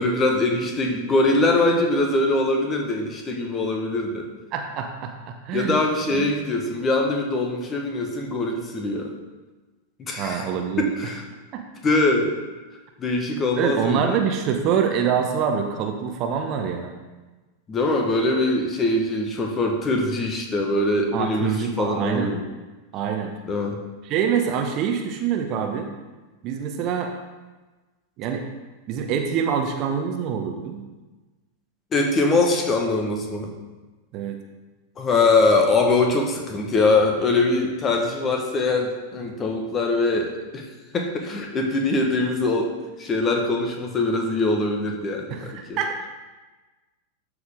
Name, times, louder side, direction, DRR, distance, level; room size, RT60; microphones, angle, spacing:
voice 1, 0.0-4.3 5.5-9.1 10.0-10.4 10.8-11.2 11.8-12.3 13.0-14.2 17.7-22.4 23.4-23.8 31.9-33.5 35.0-40.7 40.9-42.7 43.0-45.8, left 2 dB, 25° left, 2 dB, 1.4 m, -22 dB
voice 2, 4.5-5.8 6.1-6.3 10.2-10.9 11.5-11.6 13.6-16.9 21.1-22.3 22.9-23.3 24.0-25.9 26.4-27.1 28.2-28.4 28.9-30.8 34.1-34.4 45.3-46.1, right 7 dB, 40° right, 4 dB, 0.9 m, -25 dB
12.5 x 4.9 x 3.7 m, 1.2 s
figure-of-eight pair, 90°, 0 cm